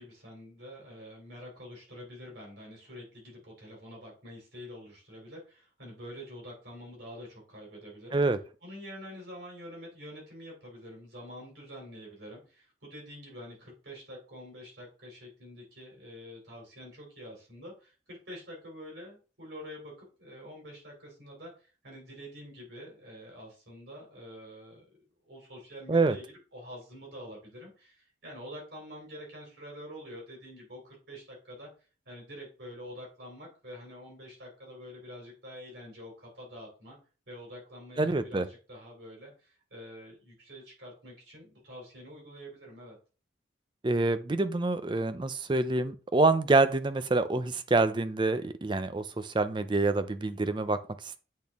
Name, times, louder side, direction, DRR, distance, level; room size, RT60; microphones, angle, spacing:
voice 1, 0.0-8.2 8.6-24.9 25.2-31.7 32.0-37.0 37.3-43.0, equal, 60° right, -1 dB, 3.2 m, -47 dB
voice 2, 38.0-38.5 43.8-51.2, right 3 dB, 25° right, 12 dB, 0.4 m, -26 dB
8.4 x 4.1 x 3.5 m, 0.36 s
head